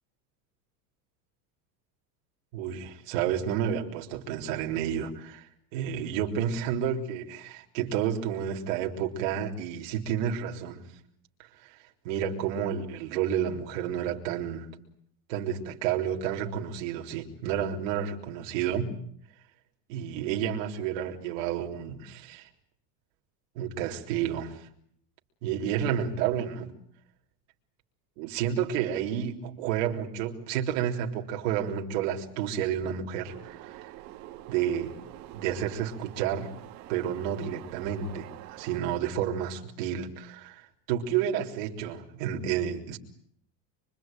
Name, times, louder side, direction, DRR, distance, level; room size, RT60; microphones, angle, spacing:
voice 1, 2.5-10.8 12.0-14.7 15.3-18.9 19.9-22.5 23.6-24.6 25.4-26.7 28.2-33.9 34.5-35.0 35.3-36.5 36.9-40.6 40.9-43.0, right 9 dB, 50° right, 3.7 m, -30 dB
sound 1, 33.2-38.8, right 14 dB, 35° right, 2.6 m, -46 dB
26.0 x 24.5 x 9.1 m
supercardioid pair, 180°, 48 cm